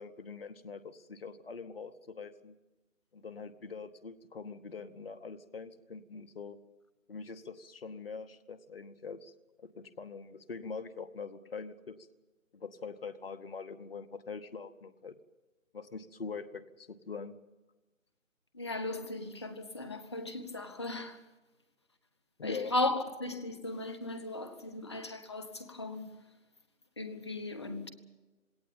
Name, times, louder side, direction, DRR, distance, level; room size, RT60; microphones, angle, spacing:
voice 1, 0.0-2.5 3.1-6.6 7.1-9.3 9.6-12.0 12.5-15.2 15.7-17.4 22.4-22.7, left 5 dB, 45° left, 1.1 m, -43 dB
voice 2, 18.5-21.2 22.4-26.2 27.0-27.9, left 2 dB, 20° left, 1.1 m, -36 dB
20.0 x 18.0 x 8.7 m
figure-of-eight pair, 165°, 40 cm